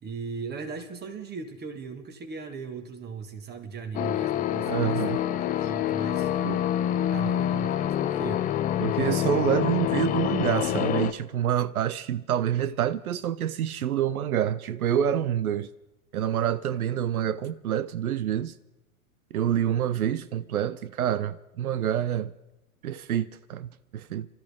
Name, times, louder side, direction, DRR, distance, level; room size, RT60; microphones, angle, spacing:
voice 1, 0.0-5.2 5.4-6.3 7.0-8.4, right 5 dB, 25° right, 1.8 m, -38 dB
sound 1, 3.9-11.1, left 11 dB, 20° left, 0.5 m, -26 dB
voice 2, 4.7-5.2 6.4-6.6 8.8-15.7 16.1-18.5 19.3-22.3 22.8-24.3, right 10 dB, 90° right, 0.6 m, -27 dB
25.0 x 13.5 x 3.6 m
hypercardioid pair, 115°, 42 cm